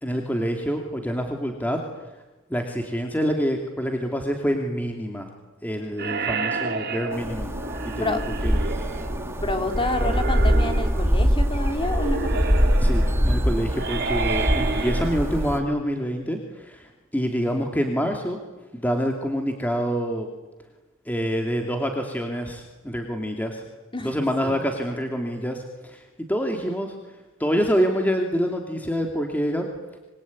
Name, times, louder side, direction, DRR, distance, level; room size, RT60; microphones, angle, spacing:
voice 1, 0.0-1.8 2.5-5.3 5.6-7.5 7.8-8.5 10.0-10.2 12.8-18.4 18.7-20.3 21.1-23.6 24.0-26.0 26.3-26.9 27.4-29.7, equal, 10° left, 3 dB, 2.7 m, -26 dB
sound 1, 6.0-15.7, right 4 dB, 50° right, 3.6 m, -31 dB
sound 2, 7.1-15.6, equal, 10° right, 2.5 m, -23 dB
voice 2, 9.4-12.6 14.7-15.2 23.9-24.7, left 1 dB, 25° left, 5 dB, 3.4 m, -29 dB
25.5 x 24.0 x 9.6 m, 1.1 s
head